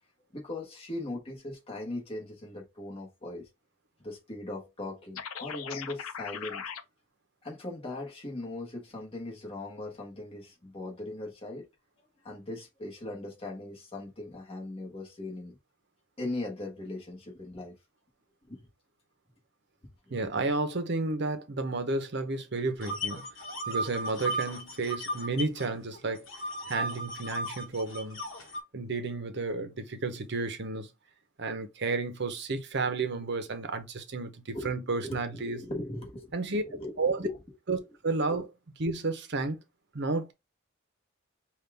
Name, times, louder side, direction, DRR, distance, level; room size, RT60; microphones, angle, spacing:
voice 1, 0.3-3.5 4.0-6.7 7.4-11.7 12.2-15.6 16.2-17.8 18.5-18.7 20.1-20.4 34.5-34.7 35.0-36.3 36.6-37.4 38.3-38.4, left 2 dB, 25° left, 1.3 m, -39 dB
sound 1, 5.1-6.8, left 7 dB, 90° left, 0.6 m, -39 dB
voice 2, 20.1-23.2 23.7-26.3 26.7-28.2 28.7-30.9 31.4-35.6 36.3-36.6 37.0-37.3 37.7-38.5 38.8-39.6 39.9-40.3, right 3 dB, 55° right, 0.8 m, -32 dB
sound 2, 22.8-25.7 25.9-28.6, right 1 dB, 70° left, 1.0 m, -35 dB
5.4 x 2.5 x 3.4 m
head